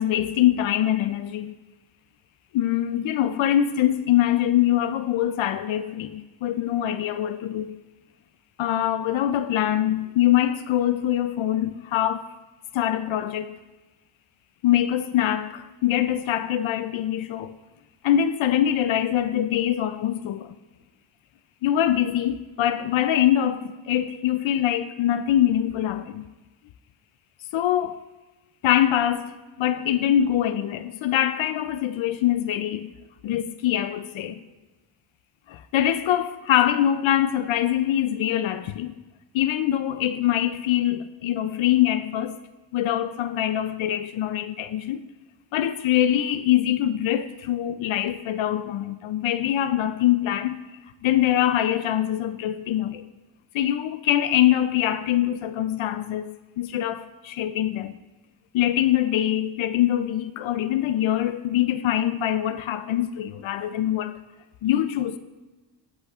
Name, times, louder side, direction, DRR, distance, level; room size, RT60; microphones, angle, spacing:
voice 1, 0.0-1.5 2.5-7.7 8.6-12.3 12.7-13.5 14.6-17.6 18.0-20.6 21.6-26.2 27.5-28.0 28.6-32.9 33.2-34.4 35.5-39.0 39.3-42.4 42.7-45.0 45.5-50.6 51.0-53.0 53.5-58.0 58.5-64.2 64.6-65.2, left 11 dB, 75° left, 0.5 m, -23 dB
16.5 x 8.0 x 2.4 m
cardioid pair, 80°, 48 cm